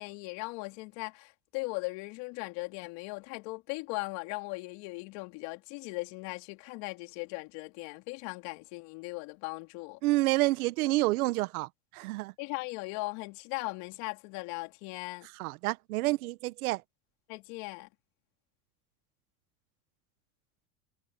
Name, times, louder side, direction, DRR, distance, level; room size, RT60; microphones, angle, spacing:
voice 1, 0.0-10.0 12.4-15.3 17.3-17.9, left 26 dB, 65° left, 2.9 m, -38 dB
voice 2, 10.0-12.3 15.3-16.8, right 19 dB, 80° right, 1.2 m, -29 dB
supercardioid pair, 100°, 43 cm